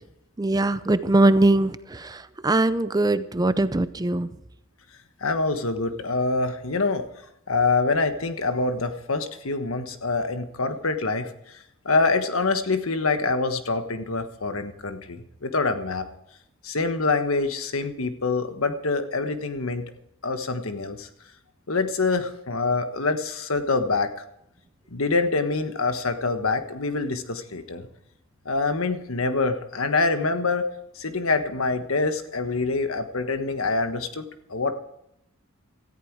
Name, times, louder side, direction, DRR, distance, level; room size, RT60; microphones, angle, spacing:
voice 1, 0.4-4.3, right 2 dB, 20° right, 13 dB, 0.5 m, -21 dB
voice 2, 5.2-7.0 7.5-11.3 11.8-16.1 16.6-19.8 20.2-21.1 21.7-24.1 24.9-27.9 28.4-30.7 31.0-34.7, left 3 dB, 90° left, 8 dB, 1.4 m, -25 dB
17.0 x 14.0 x 4.7 m, 0.78 s
head